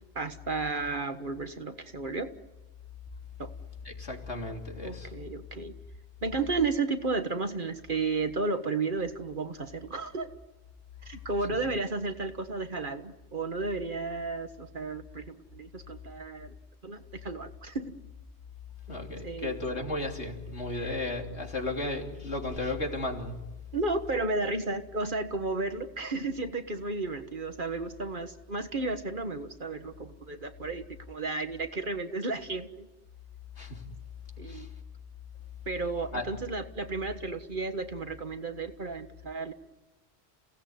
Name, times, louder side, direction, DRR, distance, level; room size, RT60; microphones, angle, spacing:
voice 1, 0.1-2.3 3.4-3.5 4.8-5.7 6.2-10.3 11.0-16.5 16.8-18.0 18.9-19.0 19.2-19.5 20.8-20.9 23.7-32.9 34.4-34.7 35.7-39.5, right 3 dB, 50° right, 8 dB, 1.6 m, -33 dB
voice 2, 3.9-5.1 18.9-23.3 33.6-33.8 34.5-34.7 36.1-36.3, left 2 dB, 80° left, 2 dB, 3.6 m, -34 dB
29.5 x 18.0 x 9.6 m, 1.1 s
omnidirectional pair, 1.1 m